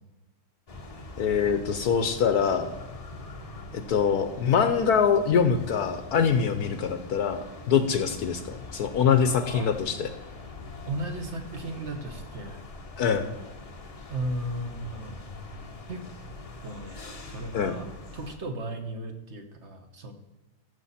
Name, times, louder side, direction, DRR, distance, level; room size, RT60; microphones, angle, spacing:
sound 1, 0.7-18.4, left 2 dB, 30° left, 0.7 m, -43 dB
voice 1, 1.2-2.7 3.7-10.1 13.0-13.3 17.5-17.8, left 7 dB, 65° left, 9 dB, 1.1 m, -24 dB
voice 2, 9.3-9.7 10.9-12.6 14.1-15.2 15.9-16.0 16.6-17.9 18.1-20.1, right 1 dB, 40° right, 5 dB, 1.3 m, -35 dB
14.5 x 6.9 x 4.2 m, 1.1 s
omnidirectional pair, 1.9 m